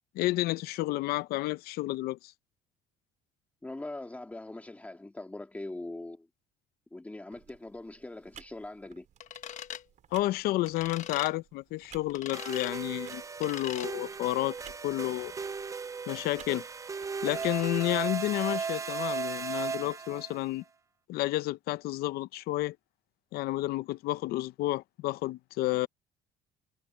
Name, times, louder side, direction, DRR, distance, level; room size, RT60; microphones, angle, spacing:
voice 1, 0.1-2.3 10.1-14.6 14.8-15.3 16.1-16.6 17.2-20.6 21.1-22.8 23.3-25.9, left 17 dB, 75° left, 0.7 m, -31 dB
voice 2, 3.6-6.3 6.9-9.1, left 2 dB, 10° left, 2.2 m, -42 dB
sound 1, 7.3-18.1, right 10 dB, 50° right, 4.0 m, -57 dB
sound 2, 9.2-9.8 10.6-11.3 12.1-12.7 13.4-13.9, left 10 dB, 50° left, 1.2 m, -40 dB
sound 3, 12.3-20.4, right 5 dB, 20° right, 0.5 m, -36 dB
cardioid pair, 130°, 16 cm